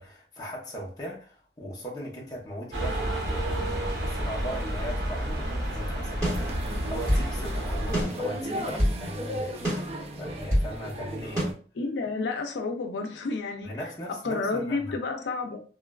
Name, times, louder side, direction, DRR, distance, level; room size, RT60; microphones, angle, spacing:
voice 1, 0.0-9.6 10.2-11.5 13.6-14.9, equal, 20° left, 0.7 m, -38 dB
sound 1, 2.7-8.0, right 1 dB, 75° right, 0.8 m, -30 dB
sound 2, 6.2-7.3 7.9-9.0 9.6-10.7 11.4-11.5, equal, 20° right, 1.4 m, -27 dB
sound 3, 6.3-11.5, equal, 35° right, 0.4 m, -36 dB
voice 2, 11.8-13.7 14.1-15.6, left 3 dB, 80° left, 0.4 m, -30 dB
3.0 x 2.3 x 2.2 m
head